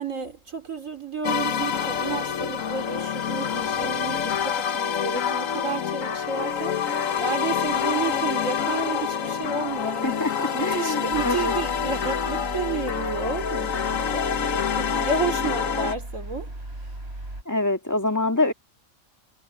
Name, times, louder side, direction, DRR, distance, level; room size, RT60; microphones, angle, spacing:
voice 1, 0.0-6.8 7.2-10.2 10.5-16.5, right 4 dB, 80° right, 3.5 m, -31 dB
sound 1, 1.2-15.9, left 8 dB, 85° left, 1.6 m, -27 dB
voice 2, 10.0-11.5 17.5-18.5, left 2 dB, 15° left, 2.2 m, -25 dB
sound 2, 11.1-17.4, right 1 dB, 50° right, 6.8 m, -36 dB
omnidirectional pair, 1.3 m